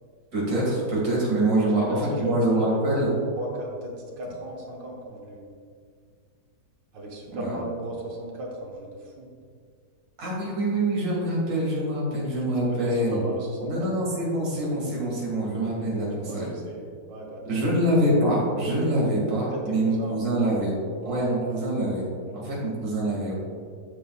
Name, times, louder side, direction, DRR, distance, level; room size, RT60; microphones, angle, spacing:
voice 1, 0.3-1.8 2.2-3.1 7.3-7.5 10.2-13.2 13.6-16.5 17.5-20.7 21.1-22.1 22.3-23.3, right 1 dB, 60° right, -5 dB, 2.5 m, -25 dB
voice 2, 1.6-2.6 3.4-5.5 6.9-9.3 12.7-13.9 16.2-17.6 19.5-20.5 21.0-21.6 22.2-22.5, right 1 dB, 85° right, -1 dB, 1.9 m, -36 dB
10.0 x 7.0 x 2.3 m, 2.1 s
omnidirectional pair, 1.9 m